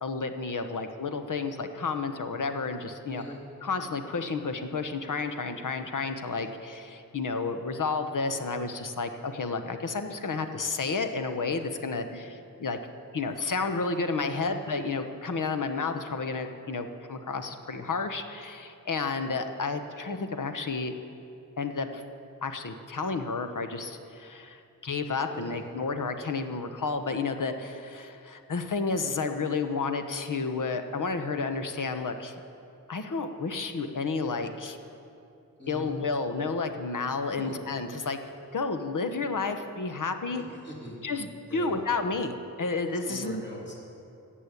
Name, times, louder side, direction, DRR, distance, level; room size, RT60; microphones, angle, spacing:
voice 1, 0.0-3.2 3.6-12.8 13.1-20.9 21.6-22.0 22.4-32.3 32.9-34.8 35.7-38.2 38.5-40.4 41.0-43.4, left 4 dB, 65° left, 7 dB, 1.0 m, -31 dB
voice 2, 3.1-3.4 14.3-14.5 25.3-25.6 35.6-35.9 37.4-37.5 40.4-41.0 41.5-41.8 43.1-43.7, equal, 30° left, -3 dB, 3.0 m, -42 dB
15.0 x 7.5 x 8.4 m, 2.6 s
wide cardioid pair, 115°, 34 cm